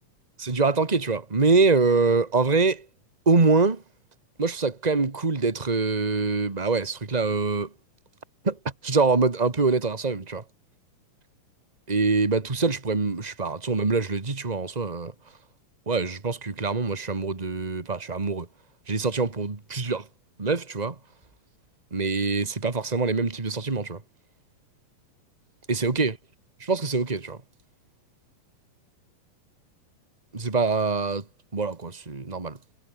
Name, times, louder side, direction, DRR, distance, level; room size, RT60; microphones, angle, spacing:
voice 1, 0.4-2.8 3.2-3.8 4.4-7.7 8.4-8.6 8.8-10.4 11.9-15.1 15.9-18.5 18.9-20.1 20.4-20.9 21.9-24.0 25.7-26.1 26.6-27.4 30.3-31.2 31.5-32.6, right 4 dB, 30° right, 0.7 m, -24 dB
omnidirectional pair, 4.0 m